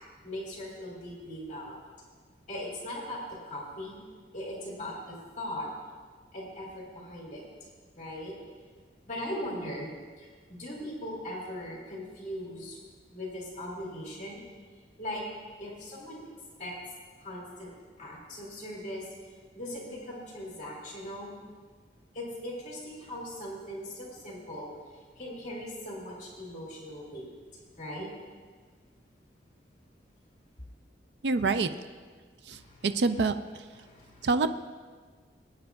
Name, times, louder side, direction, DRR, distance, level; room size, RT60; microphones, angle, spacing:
voice 1, 0.2-1.8 2.5-4.0 4.3-5.7 6.3-7.5 8.0-8.3 9.0-9.9 10.2-12.8 13.1-14.4 15.0-15.3 15.6-16.2 16.6-16.8 17.2-17.7 18.0-19.1 19.5-21.3 22.1-27.3 27.8-28.1 32.5-32.9 33.7-34.3, left 1 dB, 45° left, -4 dB, 2.4 m, -39 dB
voice 2, 31.2-31.7 32.5-33.3 34.2-34.5, right 4 dB, 75° right, 10 dB, 0.5 m, -26 dB
21.5 x 9.2 x 2.4 m, 1.5 s
head